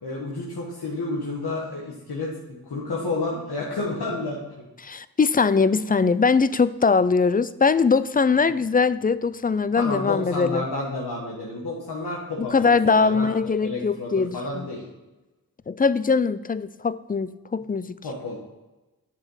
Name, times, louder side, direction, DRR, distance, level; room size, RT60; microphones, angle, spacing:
voice 1, 0.0-4.4 9.8-13.3 13.6-14.9 18.0-18.4, left 2 dB, 85° left, -4 dB, 1.4 m, -30 dB
voice 2, 4.8-10.7 12.4-14.7 15.7-17.9, left 5 dB, 25° left, 16 dB, 0.3 m, -21 dB
7.2 x 5.1 x 5.5 m, 1.1 s
cardioid pair, 50°, 38 cm